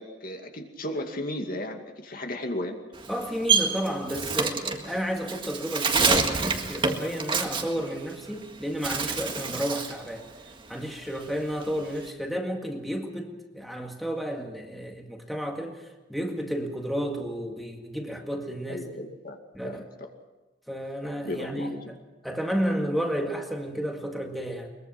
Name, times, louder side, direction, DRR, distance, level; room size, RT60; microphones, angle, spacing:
voice 1, 0.0-2.8 9.5-9.6 18.7-19.4 19.6-20.1 21.2-21.9, left 1 dB, 50° left, 4 dB, 2.4 m, -35 dB
Bird, 2.9-8.4 8.7-10.0 10.4-12.1, right 5 dB, 25° right, 1.8 m, -27 dB
voice 2, 3.1-10.3 10.7-18.9 19.5-19.8 20.7-22.0 22.2-24.8, equal, ahead, 1 dB, 2.0 m, -32 dB
22.5 x 22.0 x 6.0 m, 1.2 s
head